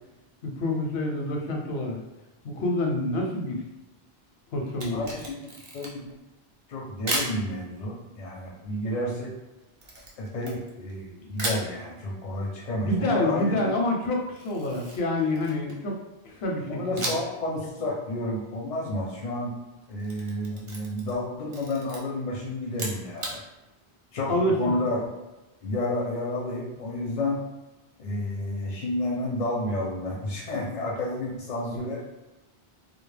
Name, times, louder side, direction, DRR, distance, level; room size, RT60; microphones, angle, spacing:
voice 1, 0.4-2.0 2.4-3.6 4.5-5.0 12.8-16.0 16.2-17.1 24.3-24.6, left 1 dB, 80° left, 0 dB, 0.8 m, -27 dB
Camera, 4.7-6.1 7.1-7.4 9.8-11.0 11.4-11.7 14.4-15.9 17.0-17.4 17.7-17.8 19.8-21.2 21.5-22.0 22.7-23.4, right 1 dB, 40° right, 0.5 m, -34 dB
voice 2, 4.9-6.2 6.7-9.3 10.2-13.7 16.7-19.6 19.9-23.4 24.1-25.0 25.6-27.4 28.0-32.1, left 1 dB, 55° left, -2 dB, 0.5 m, -31 dB
2.2 x 2.0 x 3.1 m, 1.0 s
omnidirectional pair, 1.0 m